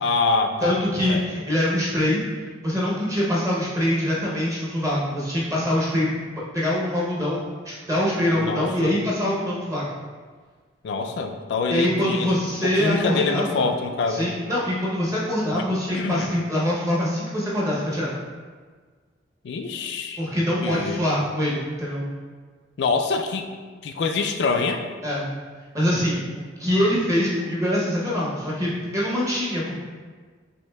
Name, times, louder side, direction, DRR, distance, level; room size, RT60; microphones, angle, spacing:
voice 1, 0.0-0.8 1.1-1.2 8.4-9.0 10.8-14.3 15.5-15.7 15.9-16.4 19.4-20.2 20.6-21.0 22.8-23.5 23.8-24.8, left 4 dB, 65° left, 5 dB, 0.3 m, -25 dB
voice 2, 0.6-2.2 2.6-6.2 6.5-9.9 11.7-13.6 14.1-18.1 20.2-22.0 25.0-25.3 25.7-26.2 26.6-29.7, left 1 dB, 15° right, -6 dB, 0.6 m, -24 dB
6.2 x 2.6 x 2.2 m, 1.5 s
head